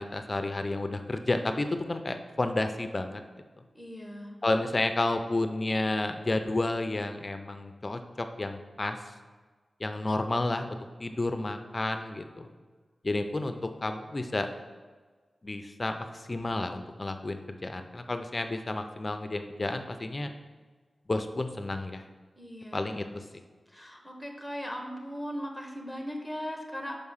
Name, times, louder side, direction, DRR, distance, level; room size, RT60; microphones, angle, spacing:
voice 1, 0.0-3.2 4.4-9.0 9.8-12.5 13.0-13.5 13.8-14.5 15.4-20.3 21.1-22.0 22.7-23.2, left 2 dB, 35° left, 7 dB, 0.5 m, -31 dB
voice 2, 3.7-4.4 22.4-23.1 23.7-26.9, equal, ahead, 2 dB, 1.0 m, -38 dB
5.2 x 4.8 x 5.6 m, 1.4 s
wide cardioid pair, 95°, 0 cm